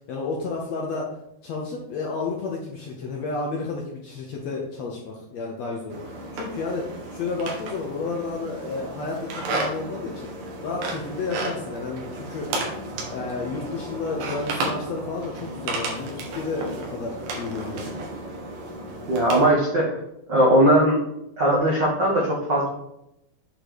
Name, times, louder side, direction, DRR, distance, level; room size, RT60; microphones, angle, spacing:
voice 1, 0.1-1.2 1.4-10.3 10.6-12.5 13.1-17.9, left 3 dB, 65° left, -1 dB, 1.7 m, -31 dB
sound 1, 5.9-19.5, right 2 dB, 85° right, 3.2 m, -33 dB
voice 2, 19.1-20.0 20.3-21.0 21.4-22.7, right 1 dB, 65° right, -3 dB, 1.1 m, -19 dB
8.6 x 3.8 x 4.9 m, 0.82 s
omnidirectional pair, 4.1 m